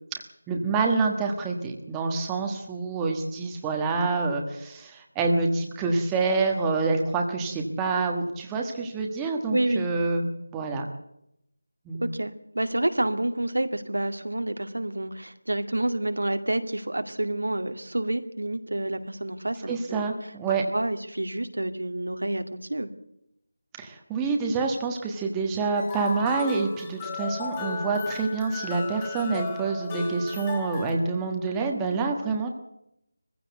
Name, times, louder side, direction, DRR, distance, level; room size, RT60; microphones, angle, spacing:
voice 1, 0.5-10.8 11.8-12.0 19.7-20.6 23.8-32.5, right 4 dB, 5° right, 1 dB, 1.3 m, -27 dB
voice 2, 9.5-9.9 12.0-20.0 20.7-22.9, right 1 dB, 90° right, 7 dB, 2.3 m, -28 dB
sound 1, 25.8-30.9, left 4 dB, 15° left, 2.6 m, -35 dB
21.0 x 15.5 x 8.1 m, 0.80 s
figure-of-eight pair, 175°, 0 cm